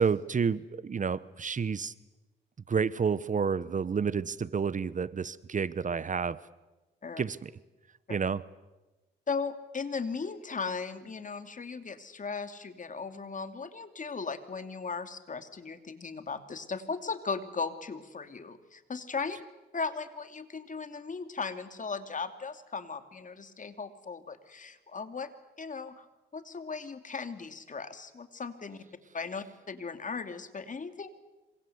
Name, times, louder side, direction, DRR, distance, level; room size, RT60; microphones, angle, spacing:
voice 1, 0.0-1.9 2.7-6.4 7.2-7.5 8.1-8.4, right 6 dB, 40° right, 18 dB, 1.0 m, -30 dB
voice 2, 9.3-19.4 19.7-25.3 25.6-26.1 26.3-28.8 29.1-31.1, left 4 dB, 40° left, 9 dB, 2.8 m, -37 dB
26.5 x 25.0 x 8.1 m, 1.1 s
cardioid pair, 70°, 20 cm